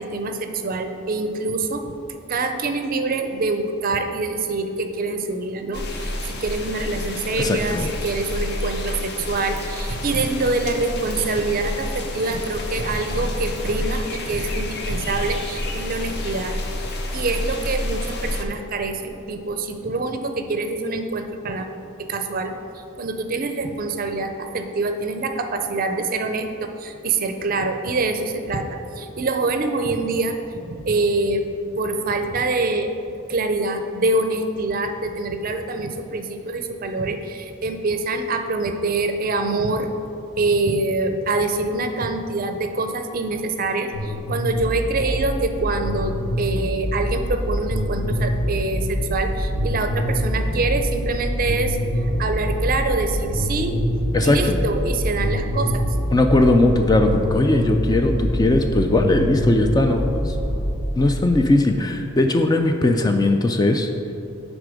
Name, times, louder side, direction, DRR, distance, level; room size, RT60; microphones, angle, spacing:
voice 1, 0.0-1.9 2.3-16.6 17.1-21.7 22.0-28.7 29.0-31.5 31.7-32.9 33.3-39.9 40.4-53.8 54.2-56.0, right 3 dB, 40° right, 6 dB, 0.5 m, -25 dB
sound 1, 5.7-18.4, left 1 dB, 50° left, 0.7 m, -29 dB
voice 2, 7.4-7.9 54.1-54.6 56.1-60.4 61.0-63.9, left 2 dB, 20° left, 5 dB, 0.3 m, -19 dB
sound 2, 43.9-60.8, equal, 75° left, 1.2 m, -25 dB
10.0 x 3.7 x 4.9 m, 2.8 s
head